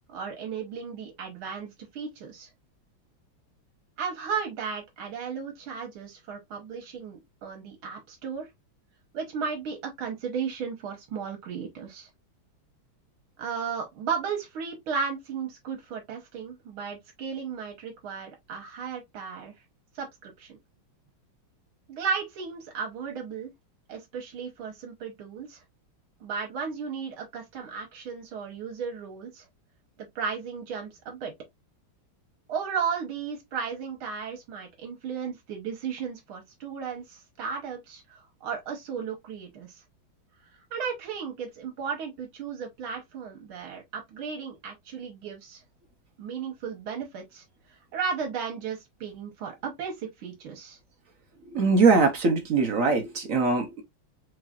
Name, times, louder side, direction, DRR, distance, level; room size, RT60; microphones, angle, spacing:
voice 1, 0.1-2.5 4.0-8.5 9.1-12.1 13.4-19.5 20.0-20.6 21.9-23.5 23.9-25.6 26.2-29.5 30.2-31.3 32.5-39.8 40.7-45.6 46.2-47.4 47.7-50.8, right 6 dB, 80° right, 2.0 m, -35 dB
voice 2, 51.5-53.8, right 4 dB, 55° right, 0.9 m, -22 dB
4.7 x 3.3 x 2.4 m
omnidirectional pair, 2.2 m